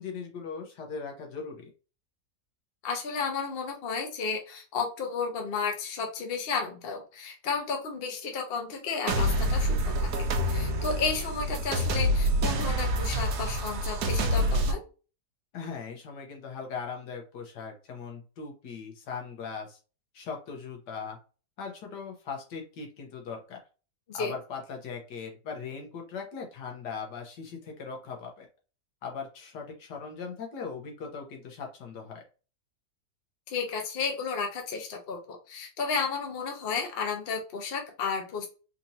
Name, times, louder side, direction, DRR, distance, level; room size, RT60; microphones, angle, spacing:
voice 1, 0.0-1.7 15.5-19.8 20.1-21.2 21.6-23.6 24.1-28.5 29.0-32.2, left 5 dB, 90° left, 2 dB, 1.6 m, -39 dB
voice 2, 2.8-14.8 24.1-24.3 33.5-38.5, left 5 dB, 45° left, 2 dB, 0.9 m, -33 dB
sound 1, 9.1-14.7, equal, 75° right, 1.2 m, -27 dB
4.3 x 2.9 x 2.7 m, 0.35 s
omnidirectional pair, 1.8 m